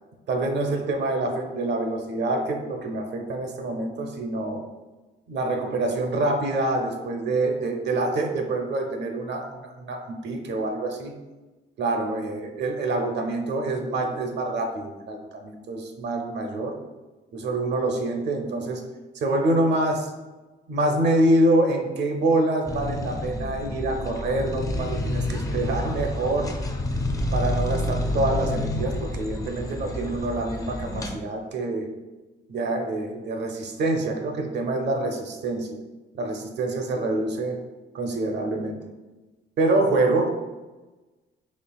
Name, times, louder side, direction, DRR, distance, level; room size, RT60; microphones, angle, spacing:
voice 1, 0.3-4.6 5.3-11.1 11.8-16.8 17.3-18.8 19.1-20.1 20.7-26.5 27.3-31.9 32.5-35.8 36.1-37.6 37.9-38.8 39.6-40.3, right 2 dB, 60° right, 3 dB, 0.6 m, -26 dB
sound 1, 22.6-31.2, left 1 dB, 15° left, 0.4 m, -29 dB
4.3 x 3.1 x 2.3 m, 1.2 s
cardioid pair, 90°, 20 cm